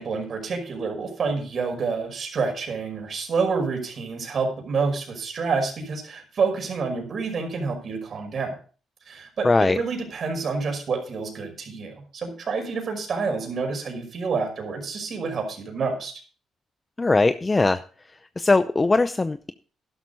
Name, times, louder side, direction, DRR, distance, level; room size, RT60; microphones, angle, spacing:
voice 1, 0.0-8.5 9.1-16.2, right 4 dB, 50° right, 4 dB, 5.5 m, -28 dB
voice 2, 9.4-9.8 17.0-17.8 18.4-19.5, left 3 dB, 25° left, 11 dB, 0.6 m, -20 dB
12.5 x 11.5 x 4.1 m, 0.40 s
cardioid pair, 90°, 0 cm